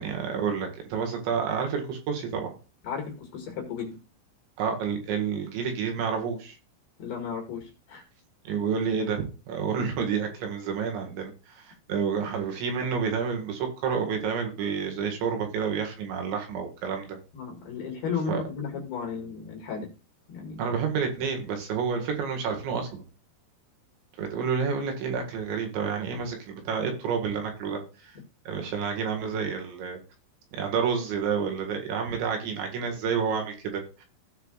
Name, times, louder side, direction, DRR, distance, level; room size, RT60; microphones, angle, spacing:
voice 1, 0.0-2.5 4.6-6.6 8.5-17.2 18.3-18.4 20.6-23.1 24.2-28.2 28.5-30.0 30.5-34.0, right 6 dB, 65° right, 3 dB, 3.9 m, -29 dB
voice 2, 2.8-4.0 7.0-8.1 17.3-19.9 20.3-20.6, left 5 dB, 60° left, 1 dB, 3.6 m, -34 dB
17.0 x 5.9 x 2.4 m, 0.33 s
omnidirectional pair, 5.9 m